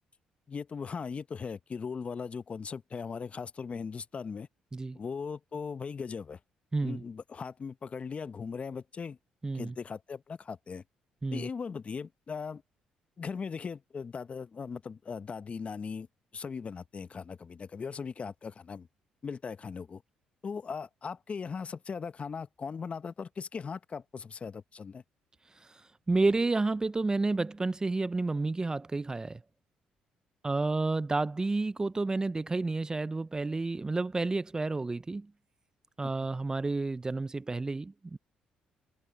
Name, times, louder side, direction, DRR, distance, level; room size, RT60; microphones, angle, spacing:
voice 1, 0.5-4.5 4.9-6.4 6.8-9.2 9.5-10.8 11.3-12.6 13.2-16.1 16.3-18.9 19.2-20.0 20.4-25.0 36.0-36.1, left 5 dB, 40° left, 1.1 m, -39 dB
voice 2, 6.7-7.0 9.4-9.7 11.2-11.5 25.7-25.8 26.1-29.4 30.4-35.3 36.0-38.2, right 3 dB, 25° right, 0.6 m, -30 dB
supercardioid pair, 55°, 3 cm